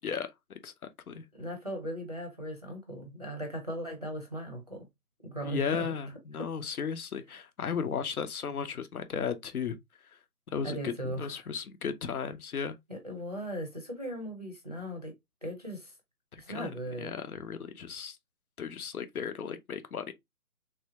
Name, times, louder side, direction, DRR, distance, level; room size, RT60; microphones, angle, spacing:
voice 1, 1.3-4.9 5.2-5.9 6.4-6.5 10.6-11.5 12.9-15.9 16.4-17.1, right 1 dB, 25° right, 0.6 m, -38 dB
voice 2, 5.4-9.8 10.5-12.8 16.3-18.2 18.6-20.1, left 6 dB, 70° left, 0.8 m, -35 dB
3.3 x 2.7 x 2.8 m
hypercardioid pair, 165°, 46 cm